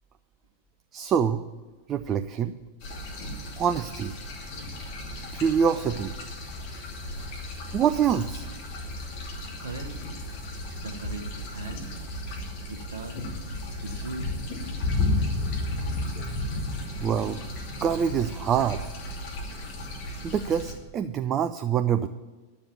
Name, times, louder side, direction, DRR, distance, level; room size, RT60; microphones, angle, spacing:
voice 1, 0.9-1.5 1.9-2.5 3.6-4.2 5.3-6.1 7.7-8.5 17.0-17.5 17.8-18.8 20.2-22.1, right 8 dB, 30° right, 10 dB, 0.5 m, -25 dB
sound 1, 2.8-20.7, left 2 dB, 45° left, 2.8 m, -33 dB
voice 2, 9.6-10.1 10.8-11.8 12.7-13.2 13.8-14.4, right 3 dB, 65° right, 3 dB, 1.2 m, -38 dB
12.0 x 7.0 x 8.7 m, 1.3 s
figure-of-eight pair, 90°, 0 cm